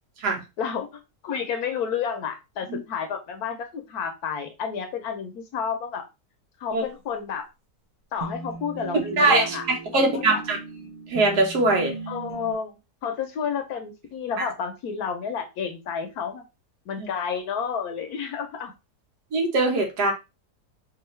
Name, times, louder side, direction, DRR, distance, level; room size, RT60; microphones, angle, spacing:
voice 1, 1.2-6.0 6.6-7.5 8.1-9.7 9.9-10.4 12.1-16.4 16.9-18.7, left 7 dB, 70° left, 6 dB, 1.2 m, -30 dB
sound 1, 8.2-12.5, right 4 dB, 30° right, 0.6 m, -37 dB
voice 2, 9.2-9.6 9.9-10.6 11.1-11.9 14.4-14.5 17.0-17.1 19.3-20.1, right 2 dB, 75° right, 2 dB, 1.7 m, -21 dB
4.6 x 2.6 x 3.2 m, 0.25 s
omnidirectional pair, 1.7 m